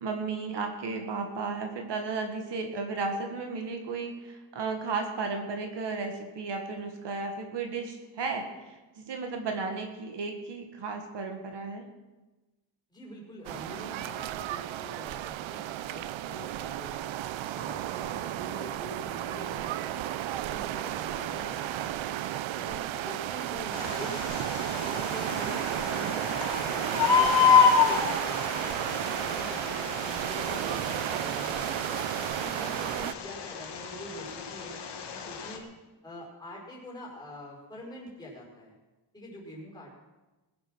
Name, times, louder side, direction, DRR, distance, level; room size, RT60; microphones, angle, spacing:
voice 1, 0.0-11.9, right 4 dB, 65° right, 4 dB, 1.8 m, -34 dB
voice 2, 12.9-16.9 17.5-22.1 22.5-24.5 24.8-28.5 28.8-31.9 32.3-34.8 35.1-35.7 36.0-38.7 39.1-39.9, equal, 10° left, -3 dB, 5.1 m, -44 dB
sound 1, 13.4-33.1, right 13 dB, 85° right, 0.7 m, -33 dB
Bird, 23.7-35.6, left 6 dB, 60° left, 2.2 m, -29 dB
20.5 x 8.4 x 6.4 m, 1.1 s
wide cardioid pair, 180°, 46 cm